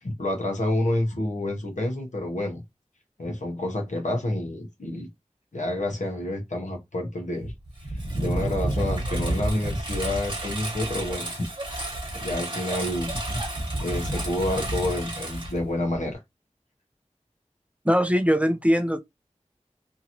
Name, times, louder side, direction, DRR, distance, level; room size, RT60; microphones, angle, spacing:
voice 1, 0.0-2.6 3.2-5.1 5.5-7.5 8.2-11.3 12.1-13.4 13.8-16.2, left 1 dB, 85° left, 1.0 m, -29 dB
Engine, 7.4-16.1, right 1 dB, 40° right, 1.1 m, -30 dB
voice 2, 17.9-19.0, equal, 10° right, 0.4 m, -21 dB
2.8 x 2.6 x 2.8 m
wide cardioid pair, 50°, 12 cm